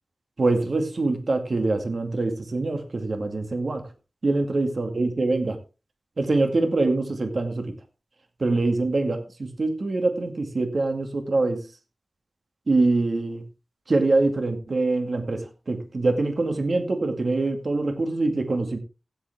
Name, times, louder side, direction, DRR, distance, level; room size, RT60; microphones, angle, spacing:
voice 1, 0.4-3.9 4.2-5.6 6.2-7.7 8.4-11.6 12.7-13.4 13.9-18.8, right 2 dB, 60° right, 6 dB, 2.2 m, -24 dB
15.5 x 8.1 x 3.5 m, 0.31 s
cardioid pair, 50°, 0 cm